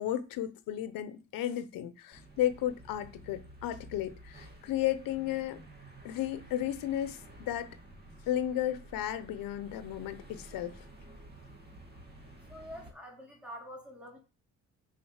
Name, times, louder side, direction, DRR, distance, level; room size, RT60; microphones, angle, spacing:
voice 1, 0.0-5.6 6.0-7.7 8.3-10.8, left 12 dB, 90° left, 0.9 m, -34 dB
sound 1, 2.1-12.9, right 1 dB, 30° right, 2.0 m, -52 dB
voice 2, 12.4-14.2, equal, 5° right, 2.5 m, -46 dB
6.9 x 5.1 x 6.4 m
cardioid pair, 145°, 33 cm